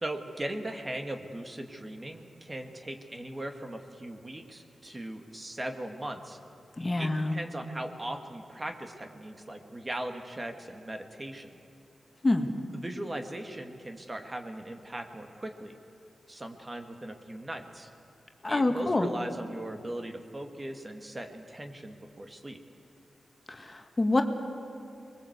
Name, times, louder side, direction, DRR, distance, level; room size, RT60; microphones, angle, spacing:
voice 1, 0.0-6.4 7.0-11.6 12.7-15.8 16.3-17.9 18.5-22.6, right 1 dB, 30° right, 5 dB, 2.0 m, -39 dB
voice 2, 6.8-7.4 12.2-12.5 18.4-19.1 23.5-24.2, left 2 dB, 30° left, 5 dB, 1.9 m, -26 dB
24.5 x 21.0 x 8.2 m, 2.6 s
cardioid pair, 65°, 0 cm